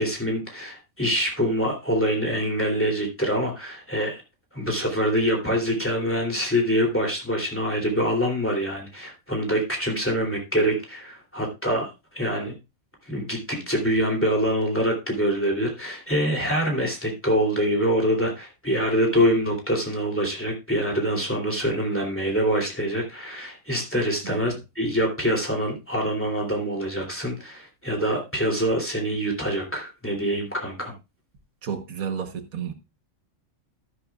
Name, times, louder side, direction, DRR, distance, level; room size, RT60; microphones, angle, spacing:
voice 1, 0.0-4.2 4.5-12.5 13.1-30.9, equal, 10° left, 2.8 m, -25 dB
voice 2, 31.6-32.7, right 7 dB, 80° right, 1.5 m, -31 dB
12.5 x 10.0 x 2.3 m
omnidirectional pair, 1.5 m